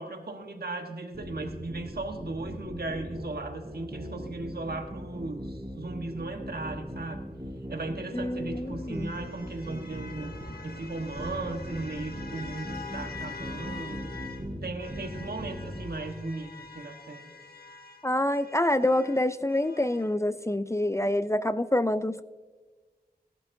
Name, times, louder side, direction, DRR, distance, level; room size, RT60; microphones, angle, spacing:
voice 1, 0.0-7.2 7.7-10.3 10.6-14.1 14.6-17.3, right 2 dB, 75° right, 4 dB, 1.3 m, -37 dB
sound 1, 1.1-15.9, equal, 30° right, 3.9 m, -39 dB
sound 2, 7.9-14.5 14.8-20.1, left 4 dB, 75° left, 1.2 m, -46 dB
voice 2, 8.1-9.1 18.0-22.2, left 1 dB, 20° left, 13 dB, 0.4 m, -27 dB
17.5 x 11.5 x 2.7 m, 1.3 s
wide cardioid pair, 55°, 16 cm